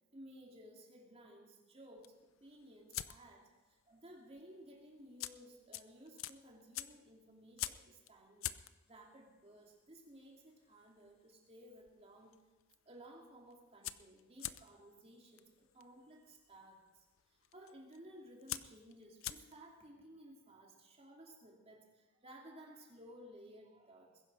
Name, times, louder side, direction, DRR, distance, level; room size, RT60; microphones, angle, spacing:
voice 1, 0.1-8.5 8.9-12.3 12.8-17.0 17.3-24.2, right 1 dB, 30° right, 0 dB, 2.8 m, -57 dB
sound 1, 2.0-3.5 3.8-4.1 4.4-4.5 5.0-11.9 12.2-12.8 13.1-13.2 13.4-19.8, left 13 dB, 70° left, 0.6 m, -46 dB
21.5 x 10.5 x 4.9 m, 1.2 s
head